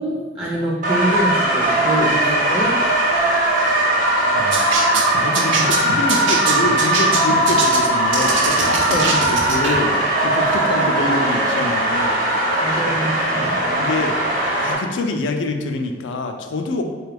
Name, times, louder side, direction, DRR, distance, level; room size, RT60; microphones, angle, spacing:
voice 1, 0.0-2.8 5.4-5.8 8.9-9.2 10.5-10.8 12.6-13.6, right 1 dB, 25° right, -5 dB, 0.5 m, -25 dB
sound 1, 0.8-14.7, right 1 dB, 45° right, 0.8 m, -19 dB
voice 2, 4.3-4.8 5.2-12.2 13.4-14.2 14.6-16.8, left 3 dB, 75° left, 5 dB, 0.4 m, -26 dB
sound 2, 4.5-9.8, right 4 dB, 80° right, 0.5 m, -24 dB
3.9 x 2.3 x 3.3 m, 1.4 s
head